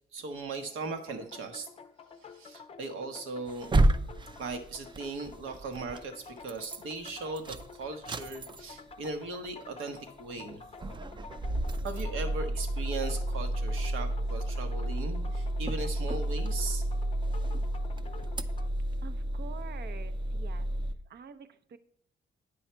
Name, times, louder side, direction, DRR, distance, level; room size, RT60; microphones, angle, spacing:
voice 1, 0.1-1.7 2.3-3.7 4.4-10.6 11.8-16.8, right 3 dB, 85° right, 6 dB, 1.1 m, -38 dB
sound 1, 0.9-18.7, left 5 dB, 30° left, 0.5 m, -50 dB
sound 2, 3.5-6.0 6.4-6.8 7.1-8.9 9.2-9.3 9.6-9.7 10.3-10.5 10.8-20.9, right 1 dB, 25° right, 0.4 m, -31 dB
voice 2, 19.0-20.7 21.1-21.8, right 6 dB, 55° right, 12 dB, 0.7 m, -47 dB
8.9 x 5.6 x 4.4 m, 0.70 s
cardioid pair, 90°, 20 cm